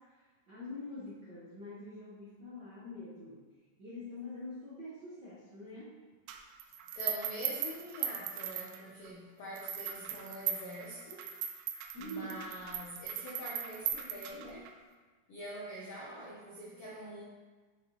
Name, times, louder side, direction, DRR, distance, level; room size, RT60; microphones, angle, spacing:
voice 1, 0.0-3.4 3.8-6.0 11.9-12.5, left 2 dB, 60° right, -9 dB, 1.1 m, -45 dB
sound 1, 6.3-9.1 9.6-14.7, right 9 dB, 80° right, 1.9 m, -38 dB
voice 2, 6.9-11.3 12.0-14.7 15.3-17.2, equal, 75° left, -4 dB, 1.3 m, -44 dB
7.0 x 6.4 x 3.0 m, 1.4 s
omnidirectional pair, 3.7 m